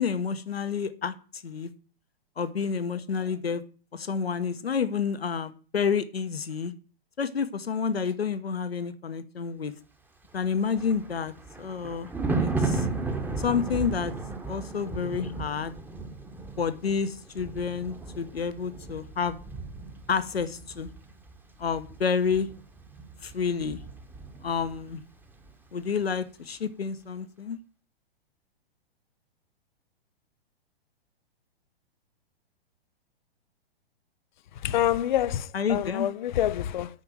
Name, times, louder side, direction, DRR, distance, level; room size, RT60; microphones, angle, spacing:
voice 1, 0.0-1.7 2.4-3.6 3.9-6.7 7.2-9.7 10.3-12.1 12.4-12.9 13.4-14.1 14.5-15.7 16.6-19.4 20.1-20.9 21.6-22.5 23.2-23.8 24.4-25.0 25.7-27.6 35.5-36.1, left 6 dB, 75° left, 1.3 m, -29 dB
Thunder, 10.4-24.9 25.2-25.5, right 3 dB, 5° right, 1.3 m, -35 dB
voice 2, 34.6-36.9, left 12 dB, 50° left, 0.7 m, -26 dB
8.8 x 5.8 x 7.7 m
figure-of-eight pair, 115°, 31 cm